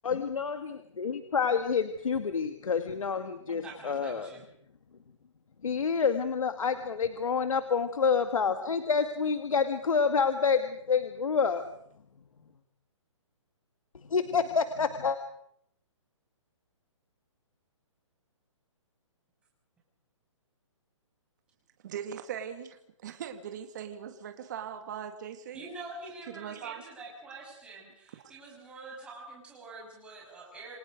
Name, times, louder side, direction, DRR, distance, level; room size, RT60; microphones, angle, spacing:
voice 1, 0.0-4.3 5.6-11.6 14.0-15.2, left 5 dB, 85° left, 8 dB, 2.1 m, -28 dB
voice 2, 3.5-4.5 25.5-30.8, right 3 dB, 5° right, -3 dB, 6.4 m, -46 dB
voice 3, 21.8-25.6 26.3-26.8, right 8 dB, 35° right, 7 dB, 2.1 m, -40 dB
28.5 x 24.5 x 5.2 m, 0.72 s
hypercardioid pair, 170°, 17 cm